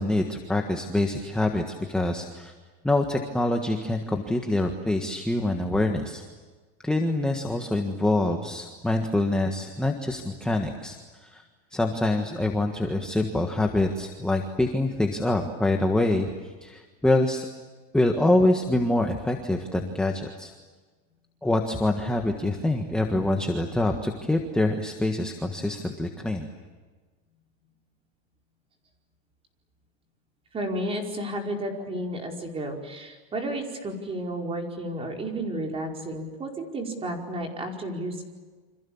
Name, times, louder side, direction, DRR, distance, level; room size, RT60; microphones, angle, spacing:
voice 1, 0.0-2.5 2.8-6.2 6.8-11.0 11.2-11.4 11.7-17.5 17.9-20.5 21.4-26.5, left 1 dB, 5° left, 3 dB, 1.5 m, -25 dB
voice 2, 30.5-38.2, right 1 dB, 20° right, 2 dB, 4.9 m, -32 dB
29.0 x 26.5 x 7.2 m, 1.4 s
supercardioid pair, 155°, 29 cm